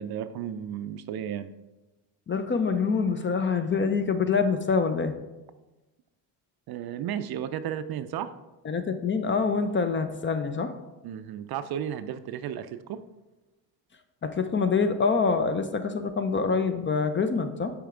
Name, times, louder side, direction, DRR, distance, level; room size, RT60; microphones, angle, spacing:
voice 1, 0.0-1.5 6.7-8.3 11.0-13.0, right 9 dB, 55° right, 11 dB, 0.5 m, -33 dB
voice 2, 2.3-5.1 8.6-10.7 14.2-17.7, left 5 dB, 25° left, 9 dB, 0.5 m, -25 dB
6.9 x 4.7 x 3.7 m, 1.1 s
supercardioid pair, 75°, 47 cm